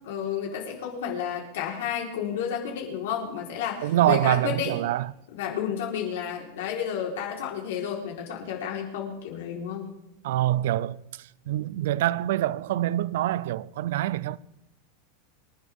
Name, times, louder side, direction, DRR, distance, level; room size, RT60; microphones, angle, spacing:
voice 1, 0.0-4.7 5.3-9.9, left 8 dB, 70° left, 4.2 m, -31 dB
voice 2, 3.8-5.1 10.2-14.4, right 14 dB, 65° right, 0.5 m, -25 dB
27.5 x 12.0 x 3.7 m
supercardioid pair, 180°, 0 cm